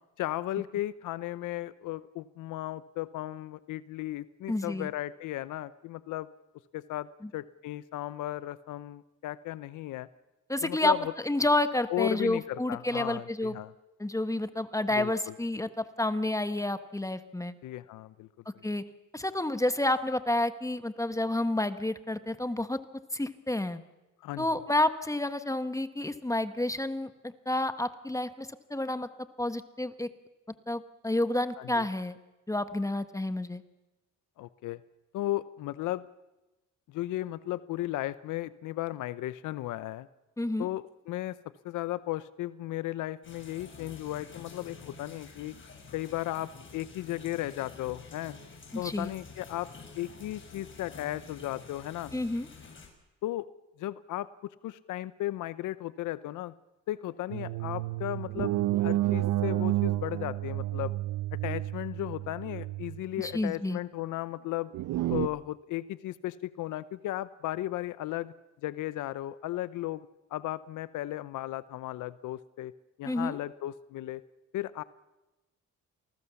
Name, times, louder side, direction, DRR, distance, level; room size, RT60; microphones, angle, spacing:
voice 1, 0.2-6.3 6.7-7.1 7.3-10.1 10.6-11.1 11.9-13.7 14.9-15.3 17.6-18.3 18.5-18.6 24.2-24.6 31.6-31.8 34.4-34.8 35.1-36.1 36.9-40.1 40.6-41.4 41.6-45.5 45.9-48.3 48.7-49.7 50.0-52.1 53.2-53.5 53.8-54.3 54.6-56.5 56.9-60.9 61.4-64.7 65.1-68.3 68.6-70.1 70.3-72.7 73.0-74.2 74.5-74.8, left 15 dB, 85° left, 16 dB, 0.8 m, -35 dB
voice 2, 4.5-4.9 7.2-7.3 10.5-10.9 11.2-13.5 14.0-17.5 18.6-18.8 19.1-22.8 23.1-23.8 24.4-29.1 29.4-30.1 30.7-32.2 32.5-33.6 40.4-40.7 48.7-49.1 52.1-52.5 63.2-63.8 73.1-73.4, left 1 dB, 10° left, 11 dB, 1.4 m, -30 dB
sound 1, 43.2-52.9, left 4 dB, 40° left, 6.8 m, -49 dB
sound 2, 57.3-63.4 64.7-65.3, right 15 dB, 90° right, 0.9 m, -30 dB
28.5 x 19.5 x 7.1 m, 1.0 s
cardioid pair, 90°, 30 cm